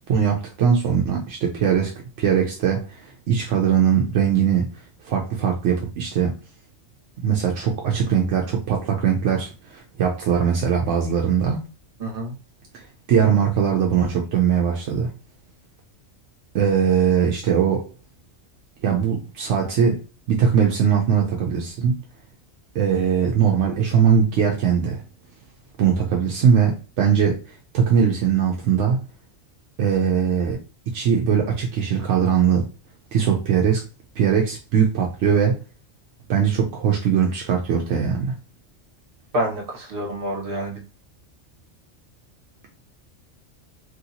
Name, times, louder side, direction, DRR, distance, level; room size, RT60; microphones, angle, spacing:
voice 1, 0.1-4.7 5.0-6.3 7.2-11.6 12.7-15.1 16.5-17.8 18.8-20.0 20.3-22.0 22.7-25.0 25.8-27.4 27.7-29.0 29.8-30.6 30.9-32.6 33.1-33.8 34.2-35.6 36.3-38.3, right 7 dB, 75° right, 0.9 m, -20 dB
voice 2, 12.0-12.3 39.3-40.8, right 1 dB, 50° right, 1.3 m, -27 dB
3.1 x 2.7 x 2.7 m
omnidirectional pair, 1.2 m